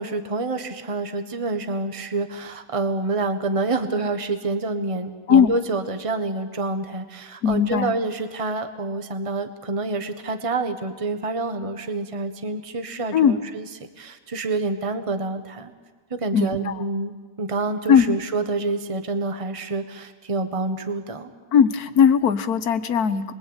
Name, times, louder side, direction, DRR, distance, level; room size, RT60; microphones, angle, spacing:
voice 1, 0.0-13.7 14.0-15.7 16.1-21.3, right 3 dB, 25° right, 7 dB, 1.5 m, -27 dB
voice 2, 7.4-7.9 13.1-13.4 16.3-16.8 17.9-18.2 21.5-23.3, left 7 dB, 85° left, 10 dB, 1.7 m, -18 dB
30.0 x 22.5 x 8.9 m, 1.4 s
omnidirectional pair, 1.6 m